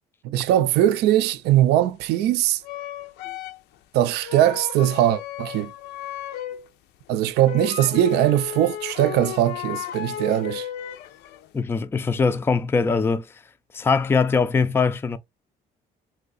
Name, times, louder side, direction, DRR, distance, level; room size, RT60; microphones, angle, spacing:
voice 1, 0.2-2.6 3.9-5.7 7.1-10.7, right 12 dB, 75° right, 0.4 m, -20 dB
sound 1, 1.5-1.6 2.6-3.7 4.2-6.7 7.1-7.2 7.3-11.5, left 11 dB, 85° left, 0.5 m, -34 dB
voice 2, 11.5-13.3 13.7-15.2, left 5 dB, 15° left, 0.3 m, -21 dB
2.7 x 2.3 x 4.0 m
cardioid pair, 110°, 17 cm